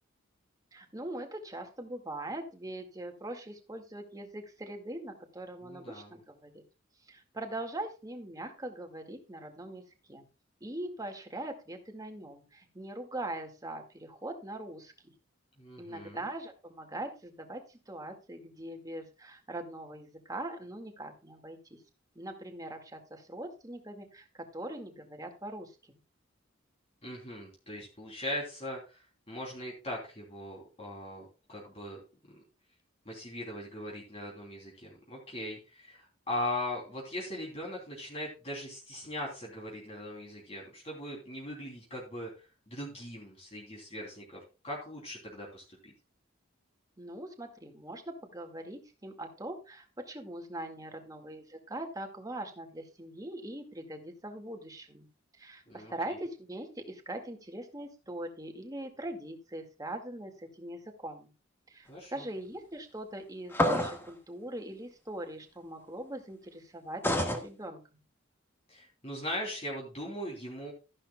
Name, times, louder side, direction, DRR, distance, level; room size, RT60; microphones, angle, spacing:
voice 1, 0.7-6.6 7.1-10.2 10.6-14.9 15.8-21.8 22.2-25.7 47.0-55.1 55.4-61.3 61.7-68.0, right 1 dB, 20° right, 4 dB, 2.0 m, -42 dB
voice 2, 5.6-6.2 15.6-16.2 27.0-32.0 33.0-45.9 55.7-55.9 61.9-62.2 68.7-70.7, left 1 dB, 30° left, -3 dB, 3.2 m, -40 dB
sound 1, 63.5-64.1 67.0-67.4, left 1 dB, 10° left, 1.6 m, -27 dB
13.5 x 11.5 x 2.3 m, 0.31 s
head